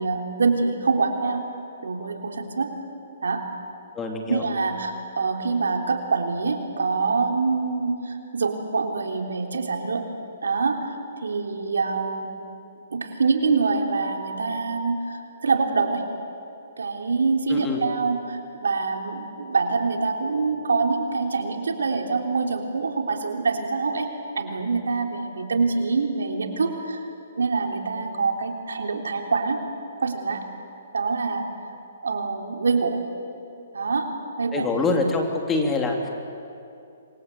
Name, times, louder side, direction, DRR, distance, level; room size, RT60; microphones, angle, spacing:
voice 1, 0.0-1.5 1.8-2.7 3.2-3.5 4.3-10.1 10.4-12.3 12.9-16.1 16.8-24.1 24.4-27.0 27.4-29.6 30.0-30.5 30.9-31.5 32.0-33.1 33.7-34.1 34.4-34.8, right 4 dB, 90° right, 3 dB, 3.4 m, -25 dB
voice 2, 3.9-4.4 17.5-17.8 34.5-36.1, left 3 dB, 15° left, 2 dB, 2.9 m, -25 dB
27.0 x 22.0 x 8.3 m, 2.6 s
hypercardioid pair, 155°, 0 cm